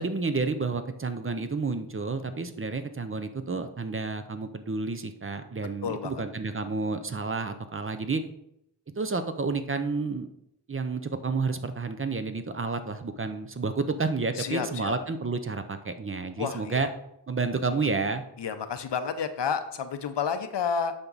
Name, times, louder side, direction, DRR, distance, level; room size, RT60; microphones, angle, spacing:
voice 1, 0.0-8.2 9.0-10.3 10.7-16.9 17.3-18.2, right 4 dB, 30° right, 9 dB, 0.6 m, -30 dB
voice 2, 5.8-6.2 14.3-14.9 16.4-16.8 18.4-20.9, left 6 dB, 80° left, 9 dB, 0.8 m, -30 dB
8.7 x 6.0 x 4.0 m, 0.79 s
wide cardioid pair, 95°, 42 cm